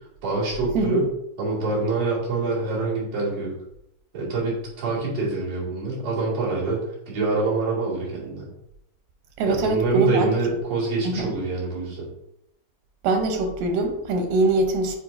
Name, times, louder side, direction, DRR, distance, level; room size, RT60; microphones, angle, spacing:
voice 1, 0.2-1.0 1.4-3.5 4.1-6.8 7.1-8.5 9.5-12.1, right 3 dB, 55° right, -8 dB, 3.6 m, -25 dB
voice 2, 9.4-10.3 11.1-11.3 13.0-15.0, right 2 dB, 90° right, 4 dB, 2.5 m, -23 dB
7.7 x 4.7 x 2.7 m, 0.81 s
omnidirectional pair, 3.6 m